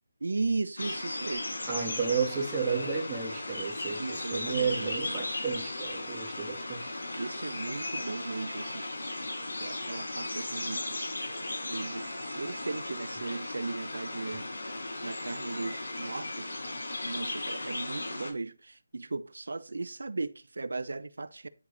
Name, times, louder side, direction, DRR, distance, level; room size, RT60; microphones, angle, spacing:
voice 1, 0.2-1.5 4.0-5.2 7.1-8.9 9.6-11.0 11.6-14.5 15.0-16.5 17.0-21.5, right 3 dB, 75° right, 1.0 m, -36 dB
sound 1, 0.8-18.3, left 2 dB, 80° left, 4.4 m, -36 dB
voice 2, 1.7-6.9, right 5 dB, 15° right, 1.9 m, -32 dB
Telephone, 7.8-8.9 11.8-12.9, right 3 dB, 45° right, 2.0 m, -49 dB
10.5 x 4.6 x 4.2 m
figure-of-eight pair, 170°, 0 cm